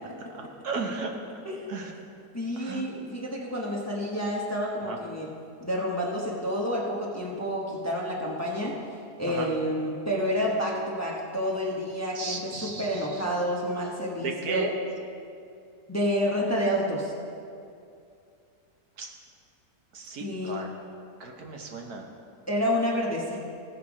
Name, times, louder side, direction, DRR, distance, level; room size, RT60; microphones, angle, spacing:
voice 1, 0.3-1.1 1.7-1.9 2.5-2.9 4.8-5.0 9.3-9.5 12.1-13.2 14.2-14.7 19.0-19.1 19.9-20.7 21.2-22.1, right 4 dB, 70° right, 2 dB, 1.5 m, -34 dB
voice 2, 2.3-5.3 5.6-8.7 9.2-14.7 15.9-17.1 20.2-20.6 22.5-23.4, equal, 10° left, -3 dB, 1.0 m, -29 dB
16.0 x 5.9 x 4.8 m, 2.5 s
omnidirectional pair, 1.7 m